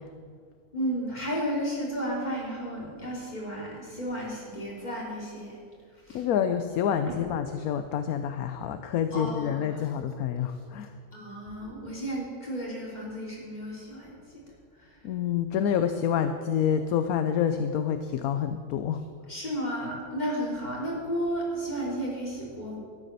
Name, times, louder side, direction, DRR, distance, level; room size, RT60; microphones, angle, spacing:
voice 1, 0.7-5.6 5.9-6.3 7.1-7.2 9.1-9.9 11.1-14.4 14.8-15.0 19.3-22.8, equal, 25° left, -4 dB, 3.6 m, -33 dB
voice 2, 6.1-10.9 15.0-19.0, left 8 dB, 70° left, 9 dB, 1.1 m, -27 dB
13.0 x 9.8 x 6.7 m, 2.1 s
omnidirectional pair, 1.7 m